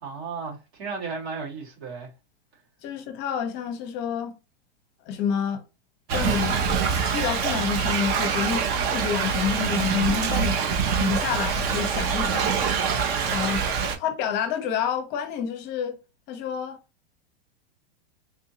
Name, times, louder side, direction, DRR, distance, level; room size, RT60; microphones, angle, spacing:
voice 1, 0.0-2.1 13.1-13.6, right 4 dB, 85° right, 2.1 m, -35 dB
voice 2, 2.8-4.3 5.1-5.6 6.1-6.7 7.1-8.6 8.9-12.9 13.3-16.0 16.3-16.8, left 7 dB, 35° left, 0.8 m, -29 dB
Thunder / Rain, 6.1-14.0, right 6 dB, 30° right, 0.6 m, -25 dB
3.4 x 2.7 x 2.8 m
supercardioid pair, 140°, 32 cm